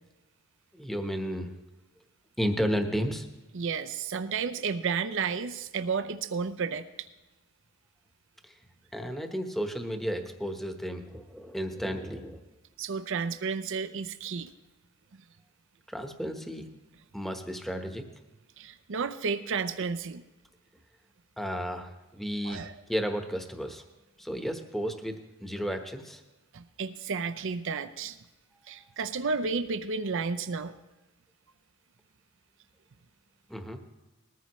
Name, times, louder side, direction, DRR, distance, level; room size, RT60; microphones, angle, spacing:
voice 1, 0.7-1.5 2.4-3.3 8.4-8.5 8.9-12.4 15.9-16.7 17.1-18.0 21.4-22.6 22.9-23.8 24.2-25.1 25.4-26.2 33.5-33.8, equal, ahead, 5 dB, 1.1 m, -33 dB
voice 2, 3.5-6.8 12.8-14.5 15.1-15.2 18.6-20.2 22.4-22.7 26.5-28.2 28.7-30.7, right 5 dB, 60° right, 10 dB, 0.6 m, -32 dB
20.0 x 14.0 x 3.1 m, 1.1 s
head